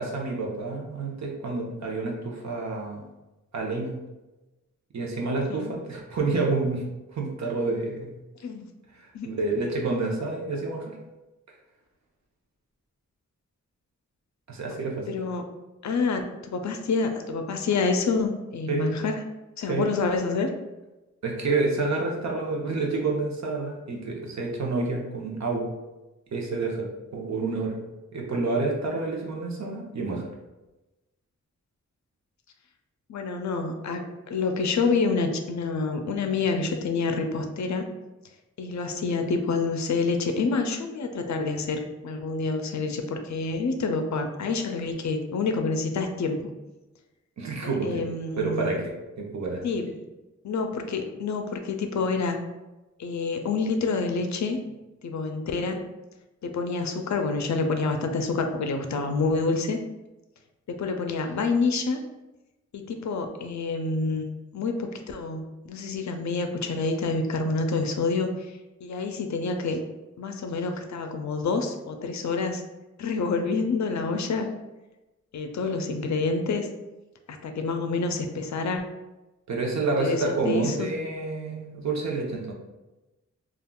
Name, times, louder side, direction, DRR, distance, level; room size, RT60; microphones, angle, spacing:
voice 1, 0.0-3.0 3.5-4.0 4.9-6.8 7.1-8.2 9.0-10.9 14.5-15.1 18.7-18.9 19.7-19.8 21.2-25.7 26.3-27.8 28.1-30.3 47.4-48.1 48.4-49.7 79.5-82.5, right 3 dB, 65° right, -1 dB, 0.7 m, -29 dB
voice 2, 15.1-15.4 15.8-19.2 19.6-20.5 33.1-37.9 38.6-46.5 47.6-48.7 49.6-50.0 50.4-52.4 53.0-54.6 55.0-55.8 56.4-59.8 60.7-62.0 62.7-64.2 64.5-68.3 68.8-69.8 70.2-72.6 73.0-74.5 75.3-76.7 77.3-78.8 80.0-80.9, left 4 dB, 65° left, 5 dB, 0.5 m, -27 dB
3.5 x 2.4 x 2.3 m, 1.1 s
wide cardioid pair, 70°, 30 cm